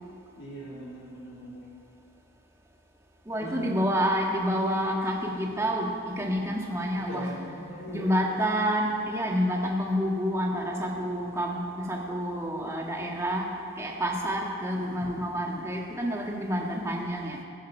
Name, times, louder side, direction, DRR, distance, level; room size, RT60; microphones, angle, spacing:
voice 1, 0.4-1.6 3.4-3.7 6.9-8.2, equal, 70° left, -6 dB, 4.1 m, -40 dB
voice 2, 3.3-7.3 7.9-13.5 13.8-17.4, equal, 15° right, -1 dB, 1.6 m, -28 dB
22.0 x 9.3 x 5.6 m, 2.5 s
head